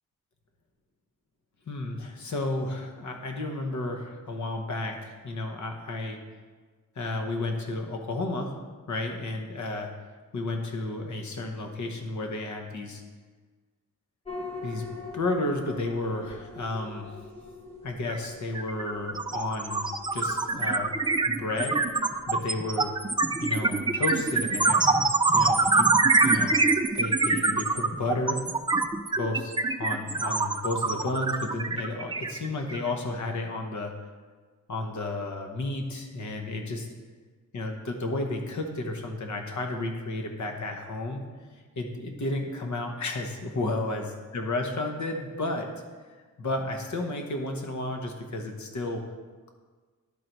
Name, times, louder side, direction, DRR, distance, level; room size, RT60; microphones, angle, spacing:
voice 1, 1.7-6.2 6.9-8.6 8.9-9.9 10.3-13.0 14.6-14.8 15.1-17.1 17.8-19.9 20.1-20.9 21.2-21.8 22.3-22.9 23.4-25.1 25.3-26.7 26.9-28.4 29.1-33.9 34.7-36.9 37.5-44.1 44.3-45.7 46.0-49.0, left 2 dB, 60° left, 3 dB, 1.1 m, -32 dB
sound 1, 14.2-29.1, left 3 dB, 20° left, 1.2 m, -46 dB
sound 2, 18.1-18.3 18.5-32.9, right 3 dB, 15° right, 0.3 m, -24 dB
11.0 x 4.0 x 4.5 m, 1.5 s
wide cardioid pair, 135°, 32 cm